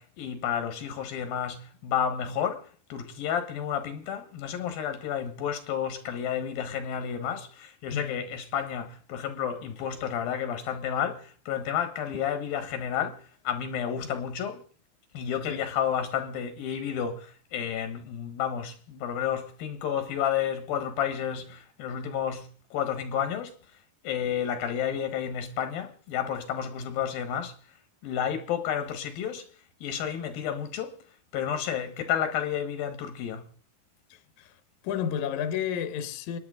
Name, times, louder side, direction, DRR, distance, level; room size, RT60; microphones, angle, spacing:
voice 1, 0.0-14.6 15.1-23.5 24.0-27.5 28.0-29.5 29.8-31.0 31.3-33.5, left 8 dB, 80° left, 3.4 m, -31 dB
voice 2, 7.9-8.2 14.0-14.2 15.5-15.6 34.1-34.5 34.8-36.4, left 8 dB, 65° left, 2.5 m, -32 dB
28.0 x 10.0 x 3.9 m
omnidirectional pair, 4.2 m